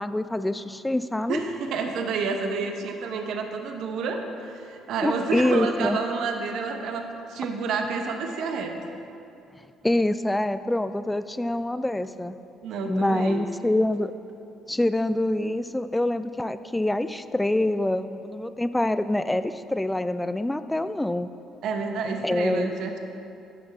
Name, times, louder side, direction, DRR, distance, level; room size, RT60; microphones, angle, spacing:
voice 1, 0.0-1.4 5.0-6.0 9.8-12.4 12.9-14.1 14.7-21.3 22.2-22.7, left 1 dB, 10° left, 12 dB, 0.3 m, -25 dB
voice 2, 1.3-7.0 7.3-8.8 12.6-13.4 21.6-23.0, right 4 dB, 70° right, 4 dB, 0.8 m, -29 dB
10.5 x 5.9 x 4.1 m, 2.6 s
cardioid pair, 95°, 0 cm